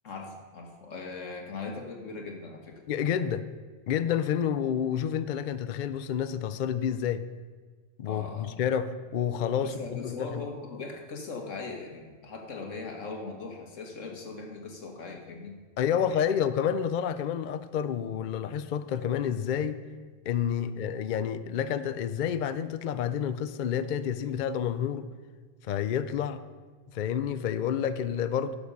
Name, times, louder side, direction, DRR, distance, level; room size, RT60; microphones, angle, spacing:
voice 1, 0.0-2.8 8.1-8.6 9.6-15.6 16.0-16.2, left 4 dB, 90° left, 2 dB, 1.8 m, -40 dB
voice 2, 2.9-3.5 3.9-7.2 8.0-10.4 15.8-19.8 20.3-25.1 25.6-26.4 26.9-28.5, left 8 dB, 60° left, 12 dB, 0.5 m, -29 dB
11.5 x 7.0 x 5.4 m, 1.5 s
omnidirectional pair, 1.3 m